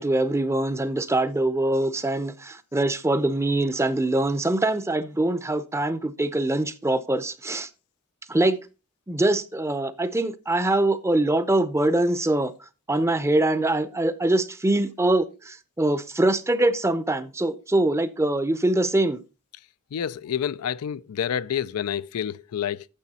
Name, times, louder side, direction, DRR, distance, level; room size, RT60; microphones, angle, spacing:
voice 1, 0.0-7.7 8.3-8.6 9.1-12.5 12.9-19.2, right 2 dB, 10° right, 0.6 m, -23 dB
voice 2, 19.9-22.9, left 8 dB, 80° left, 0.4 m, -28 dB
9.9 x 7.3 x 4.2 m
head